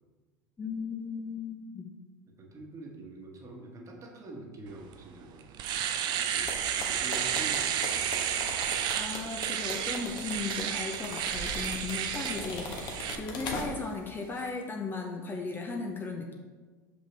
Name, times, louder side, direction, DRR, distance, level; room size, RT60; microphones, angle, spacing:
voice 1, 0.6-1.9 8.9-16.3, left 4 dB, 20° left, 2 dB, 0.7 m, -36 dB
voice 2, 2.3-5.8 6.2-6.5 6.9-8.0, right 2 dB, 30° right, 1 dB, 1.3 m, -45 dB
Domestic sounds home sounds, 4.9-5.0 5.4-13.2, right 9 dB, 45° right, 0.5 m, -32 dB
sound 1, 6.4-14.0 14.3-14.5, left 2 dB, 45° left, 1.2 m, -39 dB
5.9 x 5.2 x 3.3 m, 1.4 s
hypercardioid pair, 90°, 10 cm